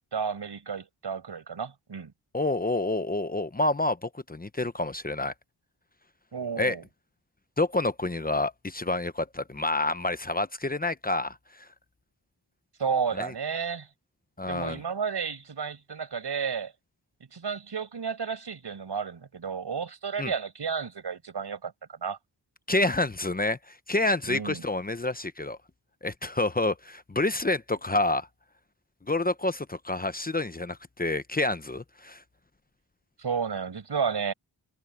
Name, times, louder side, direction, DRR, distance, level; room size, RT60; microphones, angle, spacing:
voice 1, 0.1-2.1 6.3-6.8 12.8-13.9 14.5-16.7 17.3-22.2 24.3-24.6 33.2-34.3, right 6 dB, 75° right, 5.4 m, -32 dB
voice 2, 2.3-5.3 6.6-6.8 7.6-11.7 13.2-13.3 14.4-14.8 20.2-20.3 22.7-25.6 26.0-28.3 29.1-32.2, left 2 dB, 20° left, 0.8 m, -28 dB
wide cardioid pair, 85°, 42 cm